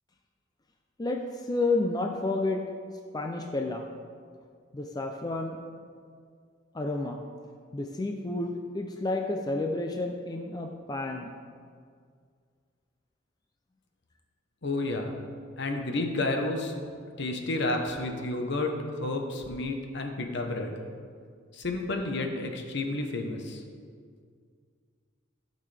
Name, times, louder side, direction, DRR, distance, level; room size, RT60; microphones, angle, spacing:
voice 1, 1.5-2.6 3.1-3.9 4.7-5.6 6.7-7.2 7.7-11.3, left 2 dB, 20° left, 3 dB, 0.4 m, -30 dB
voice 2, 14.6-15.1 15.6-16.7 17.2-18.7 19.0-20.7 21.5-23.6, left 2 dB, 60° left, 3 dB, 1.0 m, -31 dB
13.0 x 6.6 x 3.4 m, 2.1 s
head